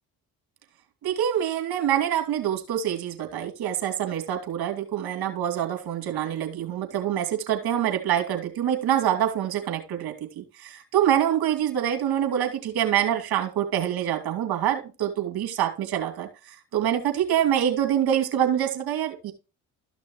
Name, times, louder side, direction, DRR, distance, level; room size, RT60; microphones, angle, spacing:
voice 1, 1.0-16.3 16.7-19.3, right 10 dB, 60° right, 4 dB, 2.6 m, -25 dB
13.5 x 6.0 x 3.1 m, 0.30 s
hypercardioid pair, 60°, 41 cm